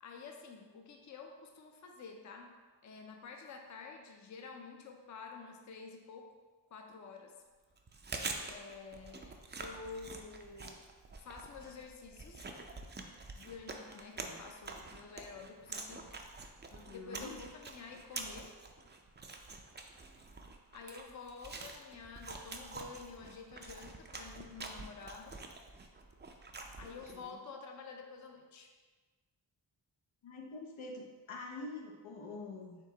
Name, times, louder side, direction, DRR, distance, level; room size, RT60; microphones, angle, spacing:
voice 1, 0.0-2.5 2.8-6.3 6.7-7.3 8.4-10.9 11.2-12.5 13.3-16.1 16.9-18.5 20.7-25.4 26.7-28.7, left 5 dB, 40° left, 3 dB, 0.5 m, -49 dB
Chewing mastication, 7.8-27.3, right 3 dB, 25° right, 0.3 m, -47 dB
voice 2, 16.7-17.3 27.1-27.4 30.2-32.8, left 2 dB, 85° left, 0 dB, 0.8 m, -46 dB
4.5 x 3.0 x 3.8 m, 1.3 s
wide cardioid pair, 95°, 46 cm